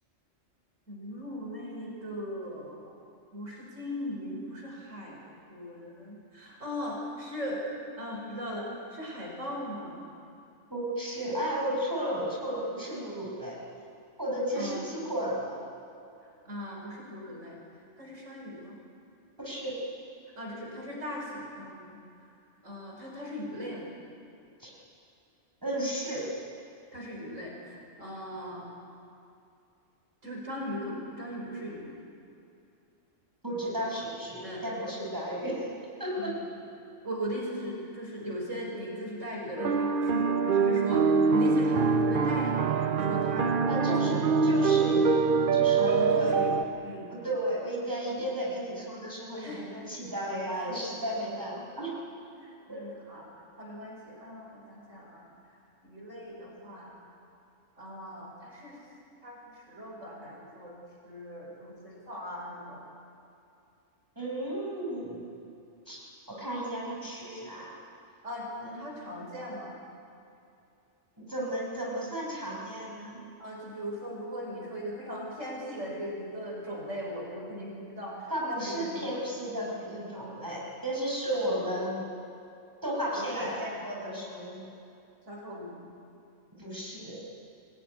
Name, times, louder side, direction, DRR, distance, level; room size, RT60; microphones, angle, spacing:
voice 1, 0.9-2.9 3.3-5.2 5.5-7.6 8.0-10.0 14.5-14.8 16.4-17.6 18.0-18.8 20.4-22.0 22.6-23.9 26.9-28.6 30.2-31.9 34.4-34.6 36.2-36.4 37.0-43.5 44.0-44.2 45.8-47.1 49.4-49.7 50.7-50.9 52.4-53.3 53.6-55.3 55.8-57.0 57.8-58.8 59.2-60.7 61.0-62.8 68.2-69.7 73.4-79.2 80.1-80.5 83.2-83.6 85.3-85.9, equal, 75° right, -2 dB, 5.8 m, -39 dB
voice 2, 10.7-13.6 14.2-15.6 19.4-19.7 24.6-24.7 25.6-26.2 33.4-35.7 36.0-36.3 43.7-45.1 45.5-46.4 47.1-51.9 52.7-52.8 64.2-65.3 65.9-67.8 68.6-68.8 71.2-73.2 78.3-82.1 82.8-84.7 86.6-87.2, right 1 dB, 15° right, -4 dB, 6.3 m, -34 dB
sound 1, 39.6-46.6, right 5 dB, 50° right, 0.9 m, -24 dB
24.0 x 18.5 x 10.0 m, 2.7 s
omnidirectional pair, 1.3 m